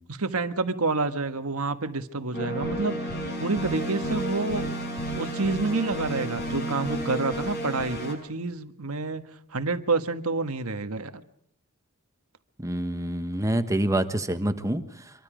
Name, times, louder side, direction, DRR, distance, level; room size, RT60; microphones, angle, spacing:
voice 1, 0.1-3.1 3.4-4.7 5.2-9.2 9.5-11.2, right 3 dB, 85° right, 9 dB, 1.5 m, -28 dB
sound 1, 2.3-8.1, right 1 dB, 55° left, 6.8 m, -31 dB
voice 2, 12.6-14.8, right 1 dB, 15° right, 9 dB, 1.4 m, -26 dB
26.0 x 23.5 x 5.1 m, 0.70 s
head